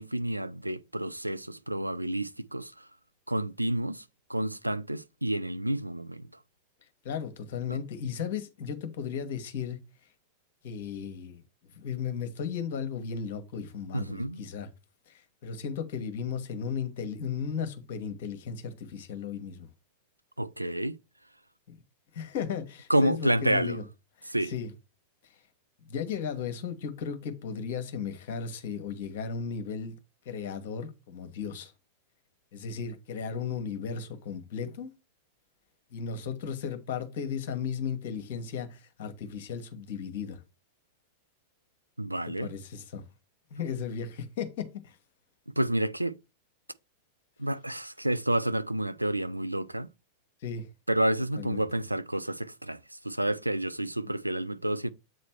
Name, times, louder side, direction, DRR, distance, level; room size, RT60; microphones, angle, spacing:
voice 1, 0.0-2.9 3.3-6.3 7.7-7.8 13.9-14.5 20.4-21.0 22.9-23.8 24.3-24.5 42.0-42.5 45.6-46.2 47.4-49.9 50.9-54.9, right 1 dB, 85° right, 0.3 m, -29 dB
voice 2, 7.0-9.8 10.6-11.4 11.7-14.7 15.1-19.7 21.7-21.8 22.1-23.8 24.2-24.7 25.9-29.9 30.2-31.7 32.5-34.9 35.9-40.4 42.4-43.0 43.5-45.0 50.4-50.7 51.4-51.6, left 6 dB, 55° left, 1.1 m, -35 dB
7.8 x 3.2 x 4.4 m
figure-of-eight pair, 90°, 0 cm